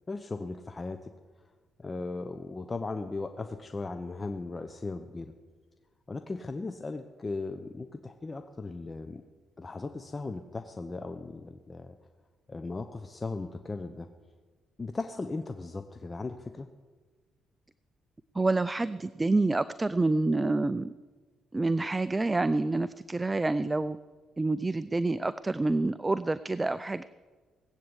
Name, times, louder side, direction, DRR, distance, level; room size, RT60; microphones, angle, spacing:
voice 1, 0.1-1.1 1.8-5.3 6.1-9.2 9.6-11.9 12.5-14.1 14.8-16.7, left 3 dB, 25° left, 7 dB, 0.8 m, -37 dB
voice 2, 18.3-20.9 21.5-24.0 24.4-27.0, right 2 dB, 20° right, 15 dB, 0.4 m, -27 dB
18.5 x 8.5 x 8.1 m, 1.4 s
cardioid pair, 90°, 0 cm